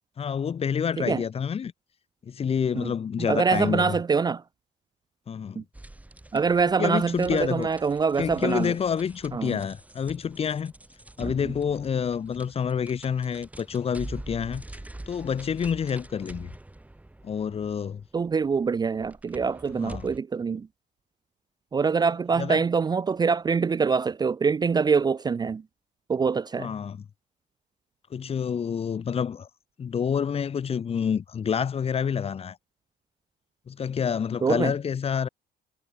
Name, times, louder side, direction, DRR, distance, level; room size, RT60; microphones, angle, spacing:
voice 1, 0.2-1.7 2.2-4.0 5.3-5.6 6.8-7.7 8.2-10.7 11.2-14.6 15.1-16.5 17.2-18.0 19.8-20.1 22.4-22.6 26.6-27.0 28.1-29.5 29.8-32.6 33.7-35.3, left 7 dB, 35° left, 1.2 m, -28 dB
voice 2, 3.2-4.4 5.6-5.7 6.3-8.7 9.3-9.6 11.2-11.5 18.1-20.7 21.7-25.6 26.1-26.7 34.4-34.7, right 5 dB, 25° right, 0.5 m, -25 dB
sound 1, 5.7-20.2, right 1 dB, 10° right, 2.5 m, -45 dB
cardioid pair, 110°, 17 cm